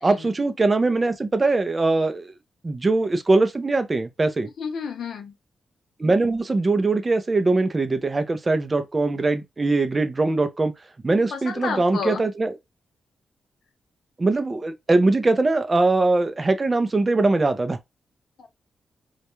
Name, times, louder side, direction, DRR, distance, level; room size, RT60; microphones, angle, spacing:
voice 1, 0.0-2.3 2.6-4.5 6.0-10.7 11.0-12.5 14.2-17.8, right 3 dB, 25° right, 0.4 m, -21 dB
voice 2, 4.6-5.3 11.3-12.2 18.4-18.5, left 5 dB, 80° left, 0.6 m, -31 dB
2.3 x 2.1 x 2.9 m
wide cardioid pair, 150°, 0 cm